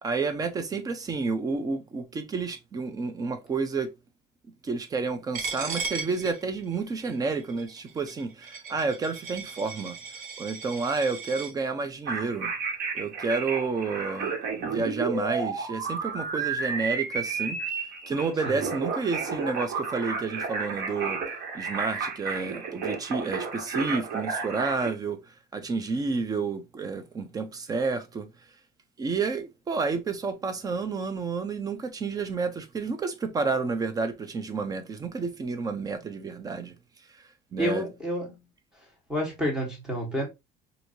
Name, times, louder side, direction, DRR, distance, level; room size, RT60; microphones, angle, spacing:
voice 1, 0.0-3.9 4.6-9.9 10.4-12.5 12.9-17.6 18.1-21.2 21.5-25.2 25.5-28.3 29.0-36.7 37.5-37.9, right 4 dB, 20° right, 0.5 m, -30 dB
Coin (dropping), 5.3-11.5, right 4 dB, 50° right, 1.2 m, -37 dB
sound 1, 12.1-24.9, right 5 dB, 85° right, 1.6 m, -32 dB
voice 2, 37.6-38.3 39.1-40.3, equal, 5° right, 1.3 m, -29 dB
4.4 x 2.7 x 2.6 m
cardioid pair, 160°, 17 cm